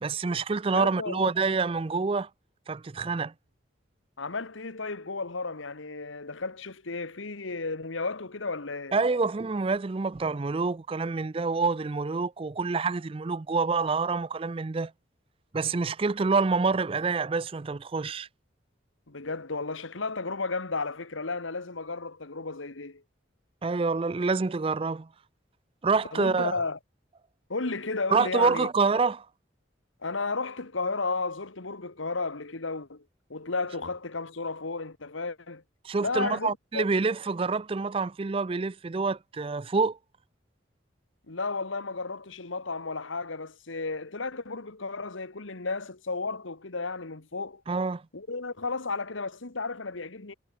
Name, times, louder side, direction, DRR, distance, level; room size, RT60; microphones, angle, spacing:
voice 1, 0.0-2.3 2.7-3.3 8.9-14.9 15.5-18.3 23.6-25.1 25.8-26.5 28.1-29.3 35.8-40.0 47.7-48.0, right 4 dB, 30° right, 0.4 m, -27 dB
voice 2, 0.7-1.3 4.2-9.0 19.1-23.0 26.1-26.8 27.5-28.7 30.0-33.0 33.3-35.6 36.0-36.8 41.3-47.6 48.1-50.3, left 3 dB, 85° left, 1.7 m, -33 dB
head